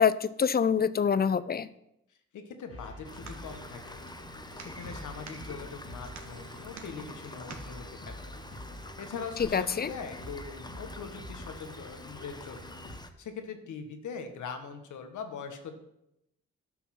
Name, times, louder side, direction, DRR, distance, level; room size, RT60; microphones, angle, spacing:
voice 1, 0.0-1.7 9.5-9.9, left 7 dB, 30° left, 16 dB, 0.6 m, -25 dB
voice 2, 2.3-4.0 4.6-8.3 9.0-12.8 13.2-15.7, left 5 dB, 75° left, 6 dB, 1.6 m, -42 dB
sound 1, 2.7-13.0, equal, 50° left, 2.3 m, -47 dB
sound 2, 2.8-7.8, right 4 dB, 65° right, 1.7 m, -50 dB
Rain, 3.0-13.1, left 1 dB, 15° left, 1.2 m, -46 dB
11.0 x 6.0 x 5.9 m, 0.82 s
supercardioid pair, 55°, 30 cm